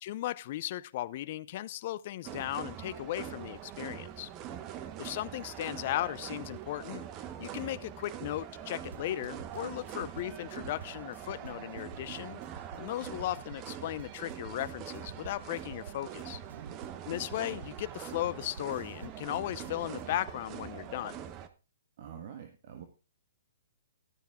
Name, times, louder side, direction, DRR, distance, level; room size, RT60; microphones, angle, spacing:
voice 1, 0.0-4.3 5.0-7.0 7.4-12.4 12.8-16.4 17.1-21.2, left 14 dB, 45° left, 0.6 m, -36 dB
sound 1, 2.2-21.5, right 10 dB, 25° right, 1.0 m, -43 dB
sound 2, 8.9-20.3, right 5 dB, 85° right, 0.7 m, -50 dB
voice 2, 16.5-16.8 22.0-22.8, right 8 dB, 50° right, 1.6 m, -46 dB
13.0 x 9.3 x 3.6 m
hypercardioid pair, 150°, 0 cm